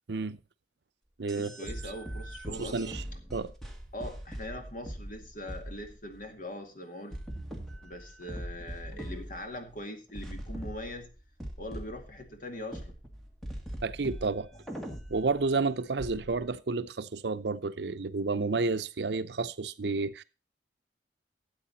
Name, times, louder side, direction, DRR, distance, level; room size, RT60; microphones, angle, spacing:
voice 1, 0.1-0.4 1.2-1.5 1.8-1.9 2.5-3.0 3.3-3.5 13.8-14.5 15.1-20.2, right 3 dB, 70° right, 0.6 m, -31 dB
voice 2, 1.3-3.0 3.9-7.2 7.8-11.1 11.6-13.0, left 1 dB, 50° left, 2.1 m, -42 dB
sound 1, 1.3-6.2 7.1-9.8 10.1-12.4 12.7-15.5 16.0-16.6, equal, ahead, 1.9 m, -42 dB
13.0 x 8.4 x 4.1 m
head